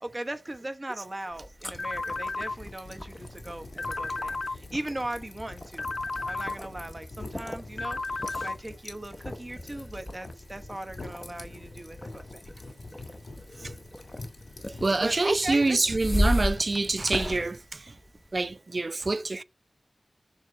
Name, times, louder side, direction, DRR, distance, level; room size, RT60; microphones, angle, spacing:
voice 1, 0.0-5.9 6.2-12.4 15.0-15.8, right 1 dB, 30° right, 1.1 m, -38 dB
sound 1, 1.3-18.5, left 1 dB, 20° left, 0.8 m, -36 dB
sound 2, 1.7-17.6, left 2 dB, 85° left, 2.2 m, -46 dB
sound 3, 1.8-2.6 3.8-4.6 5.8-6.6 7.8-8.6, left 3 dB, 65° left, 0.6 m, -32 dB
voice 2, 14.8-17.9 18.3-19.4, right 3 dB, 50° right, 0.3 m, -26 dB
6.7 x 3.2 x 6.0 m
wide cardioid pair, 60°, 0 cm